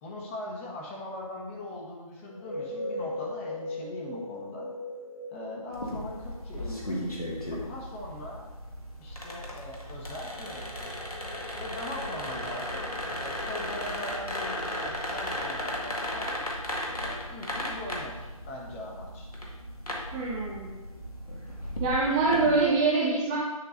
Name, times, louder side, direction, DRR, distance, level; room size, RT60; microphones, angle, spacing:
voice 1, 0.0-4.7 5.3-7.1 7.6-8.5 9.0-11.0 11.6-16.4 16.9-19.3, left 1 dB, 20° left, -2 dB, 1.4 m, -41 dB
sound 1, 2.3-6.9, left 2 dB, 65° left, 1.6 m, -38 dB
sound 2, 5.7-22.6, left 1 dB, 90° left, 1.9 m, -36 dB
voice 2, 20.1-20.7 21.8-23.4, right 3 dB, 10° right, -5 dB, 0.4 m, -25 dB
10.0 x 3.8 x 4.0 m, 1.2 s
figure-of-eight pair, 145°, 18 cm